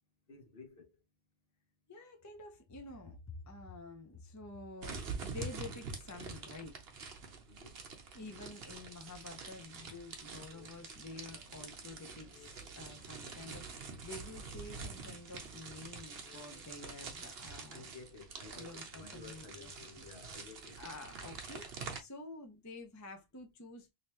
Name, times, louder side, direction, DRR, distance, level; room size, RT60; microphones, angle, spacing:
voice 1, 0.3-1.0 7.5-7.8 17.7-20.8, left 3 dB, 55° left, 1.1 m, -53 dB
voice 2, 1.9-6.8 8.1-12.5 12.7-17.8 18.5-19.7 20.8-23.9, left 3 dB, 20° left, 0.5 m, -49 dB
sound 1, 4.8-22.0, right 4 dB, 60° right, 1.0 m, -46 dB
sound 2, 10.5-17.1, left 4 dB, 75° left, 1.3 m, -62 dB
3.2 x 2.8 x 2.9 m
omnidirectional pair, 1.2 m